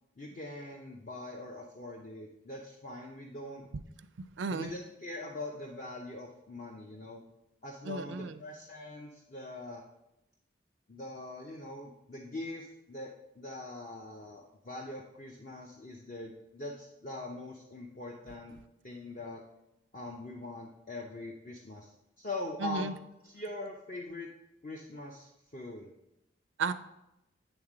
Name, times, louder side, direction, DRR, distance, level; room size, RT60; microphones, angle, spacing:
voice 1, 0.2-3.7 4.5-7.2 7.6-9.8 10.9-13.1 13.4-18.5 18.8-19.4 19.9-21.9 22.2-23.0 23.2-24.3 24.6-25.9, left 2 dB, 40° left, 0 dB, 0.6 m, -42 dB
voice 2, 4.2-4.7 7.8-8.4 22.6-22.9 26.6-26.7, right 4 dB, 85° right, 10 dB, 0.4 m, -34 dB
9.0 x 3.6 x 4.9 m, 0.89 s
head